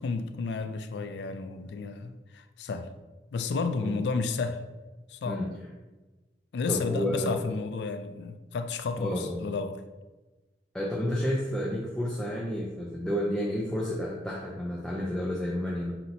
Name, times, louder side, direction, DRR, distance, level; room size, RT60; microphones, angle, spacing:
voice 1, 0.0-2.9 3.3-4.6 5.1-5.4 6.5-9.8, left 4 dB, 75° left, 9 dB, 0.3 m, -32 dB
voice 2, 6.7-7.3 9.0-9.5 10.7-15.9, equal, 5° left, -5 dB, 0.4 m, -30 dB
5.8 x 2.7 x 2.6 m, 1.2 s
head